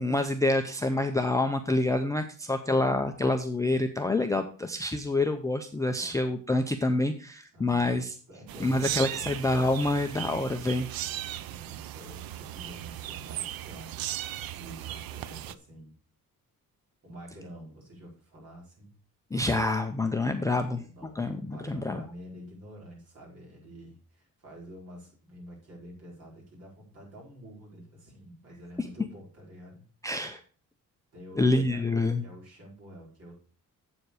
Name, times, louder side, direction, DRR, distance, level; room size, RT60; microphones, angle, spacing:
voice 1, 0.0-8.1 8.6-10.9 19.3-20.9 21.2-22.0 28.8-28.9 30.0-30.4 31.4-32.2, left 2 dB, 10° left, 5 dB, 0.4 m, -27 dB
voice 2, 7.5-8.0 8.3-9.4 11.3-15.9 17.0-18.9 20.2-29.8 31.1-31.8 32.2-33.3, equal, 45° right, -3 dB, 4.7 m, -48 dB
sound 1, 8.5-15.5, right 13 dB, 80° right, 0.6 m, -37 dB
7.8 x 7.1 x 4.8 m, 0.41 s
cardioid pair, 170°, 35 cm